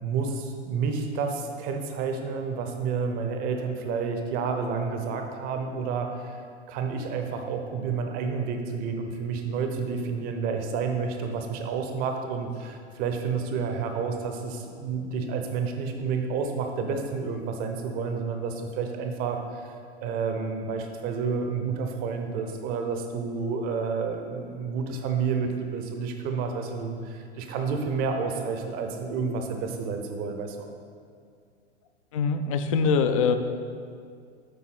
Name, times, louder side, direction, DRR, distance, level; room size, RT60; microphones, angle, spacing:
voice 1, 0.0-6.4 6.7-19.8 20.0-30.7, right 5 dB, 25° right, 5 dB, 0.6 m, -30 dB
voice 2, 32.1-33.4, left 5 dB, 30° left, 8 dB, 0.4 m, -23 dB
7.5 x 5.3 x 4.1 m, 2.3 s
figure-of-eight pair, 95°, 34 cm